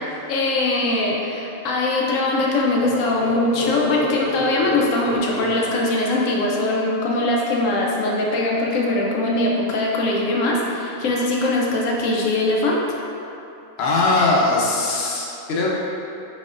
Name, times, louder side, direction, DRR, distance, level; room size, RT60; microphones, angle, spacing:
voice 1, 0.3-12.8, left 2 dB, 90° left, -2 dB, 1.0 m, -21 dB
sound 1, 2.8-6.5, left 1 dB, 20° left, 1.1 m, -29 dB
voice 2, 13.8-15.7, left 3 dB, 60° left, -4 dB, 0.9 m, -20 dB
4.5 x 4.1 x 2.5 m, 2.8 s
omnidirectional pair, 1.3 m